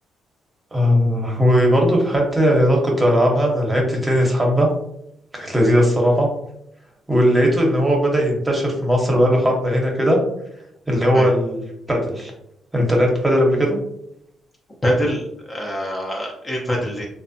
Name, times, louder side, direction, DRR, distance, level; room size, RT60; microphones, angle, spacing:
voice 1, 0.7-4.7 5.3-6.3 7.1-10.2 10.9-11.6 11.9-12.3 12.7-13.7, equal, 15° right, 0 dB, 0.9 m, -18 dB
voice 2, 14.8-17.1, equal, 25° left, -2 dB, 0.6 m, -24 dB
3.2 x 2.1 x 2.6 m, 0.78 s
cardioid pair, 90°, 0 cm